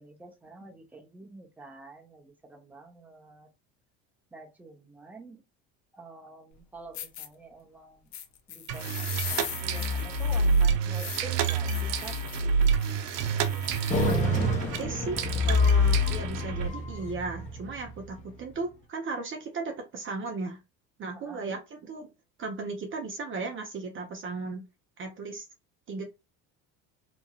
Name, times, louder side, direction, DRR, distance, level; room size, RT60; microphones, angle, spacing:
voice 1, 0.0-3.5 4.3-5.4 5.9-8.1 8.5-12.2 21.1-21.4, right 2 dB, 5° right, 1 dB, 0.8 m, -48 dB
sound 1, 6.5-6.6 6.9-7.3 8.1-14.3, left 10 dB, 50° left, 0.8 m, -41 dB
sound 2, 8.7-16.7, right 1 dB, 85° right, 0.7 m, -26 dB
sound 3, 13.9-18.4, left 2 dB, 20° left, 0.9 m, -33 dB
voice 2, 14.0-20.6 21.0-22.1 22.4-24.6 25.0-25.5 25.9-26.0, right 3 dB, 35° right, 3 dB, 0.7 m, -36 dB
3.0 x 2.6 x 2.3 m, 0.24 s
supercardioid pair, 110°, 35 cm